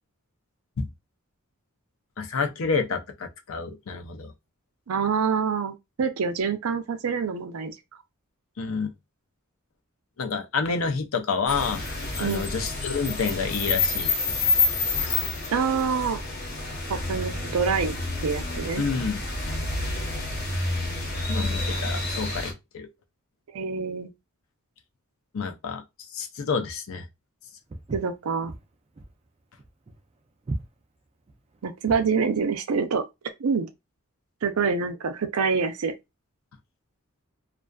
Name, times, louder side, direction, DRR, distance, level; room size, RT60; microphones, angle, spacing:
voice 1, 2.2-4.3 8.6-8.9 10.2-11.8 12.2-14.1 18.8-19.2 21.3-22.9 25.3-25.8 26.1-27.1, left 5 dB, 70° left, 0.5 m, -29 dB
voice 2, 4.9-7.7 12.2-12.5 15.5-16.2 16.9-18.8 23.5-24.1 27.9-28.5 31.6-33.0 33.4-33.7 34.4-35.9, right 5 dB, 85° right, 0.5 m, -26 dB
sound 1, 11.5-22.5, left 3 dB, 45° left, 0.8 m, -28 dB
Walk footsteps, 27.7-32.2, right 2 dB, 30° right, 0.3 m, -37 dB
2.4 x 2.3 x 2.2 m
head